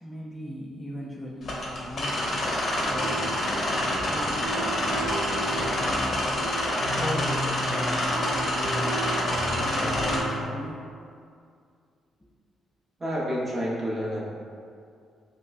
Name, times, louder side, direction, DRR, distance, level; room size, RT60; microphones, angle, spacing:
voice 1, 0.0-6.3 6.9-9.4 9.8-10.9, equal, 10° left, -4 dB, 0.4 m, -38 dB
sound 1, 1.4-10.2, left 1 dB, 50° left, 0.7 m, -27 dB
sound 2, 2.7-10.4, right 1 dB, 75° right, 0.5 m, -34 dB
voice 2, 13.0-14.3, equal, 25° right, -5 dB, 0.8 m, -29 dB
4.8 x 2.1 x 2.4 m, 2.3 s
cardioid pair, 90°, 0 cm